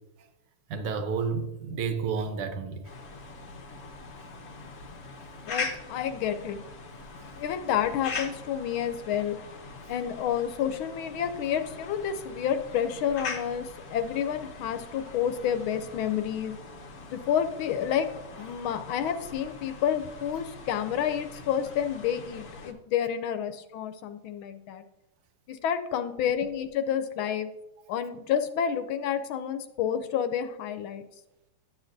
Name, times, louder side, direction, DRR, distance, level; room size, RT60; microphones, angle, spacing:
voice 1, 0.7-2.8, right 5 dB, 85° right, 1.8 m, -30 dB
sound 1, 2.8-22.7, left 4 dB, 55° left, 0.7 m, -42 dB
voice 2, 5.4-6.6 7.3-9.4 9.9-16.6 17.1-18.1 18.4-24.8 25.5-27.5 27.9-31.0, left 9 dB, 75° left, 1.3 m, -29 dB
11.5 x 7.4 x 2.6 m
omnidirectional pair, 2.4 m